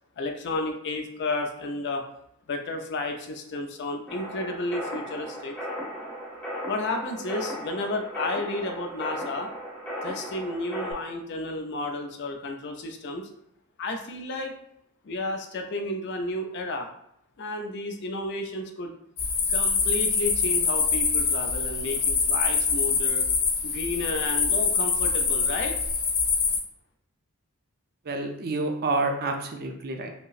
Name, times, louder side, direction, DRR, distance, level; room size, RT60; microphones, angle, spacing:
voice 1, 0.2-2.0 2.5-5.5 6.6-9.5 10.0-13.3 13.8-14.6 15.0-16.9 17.4-19.0 19.5-23.2 23.6-25.8, left 2 dB, 50° left, 4 dB, 0.5 m, -32 dB
sound 1, 4.1-10.9, equal, 5° left, 0.8 m, -36 dB
sound 2, 19.2-26.6, left 5 dB, 85° left, 0.7 m, -25 dB
voice 2, 28.1-30.1, right 3 dB, 45° right, 4 dB, 0.4 m, -28 dB
5.0 x 2.0 x 2.4 m, 0.77 s
head